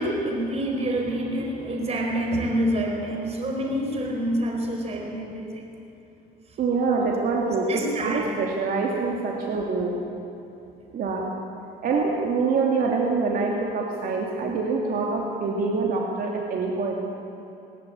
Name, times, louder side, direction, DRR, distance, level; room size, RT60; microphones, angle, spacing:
voice 1, 0.0-5.7 7.7-8.3, right 1 dB, 40° right, 1 dB, 4.4 m, -27 dB
voice 2, 6.6-10.0 10.9-11.2 11.8-16.9, right 4 dB, 60° right, -1 dB, 2.9 m, -25 dB
19.5 x 19.0 x 8.6 m, 2.9 s
cardioid pair, 110°, 17 cm